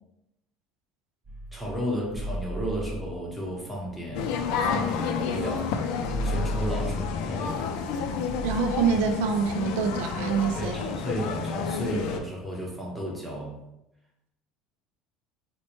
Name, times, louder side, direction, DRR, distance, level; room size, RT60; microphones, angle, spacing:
sound 1, 1.2-5.1 5.4-5.5 5.7-10.9, equal, 25° right, 0.5 m, -36 dB
voice 1, 1.5-5.8 6.2-7.7 10.6-13.6, right 1 dB, ahead, -3 dB, 0.9 m, -33 dB
sound 2, 4.1-12.2, left 6 dB, 70° left, 0.4 m, -30 dB
voice 2, 8.4-10.8, right 6 dB, 85° right, 6 dB, 0.4 m, -26 dB
4.0 x 2.1 x 3.1 m, 0.87 s
cardioid pair, 135°, 0 cm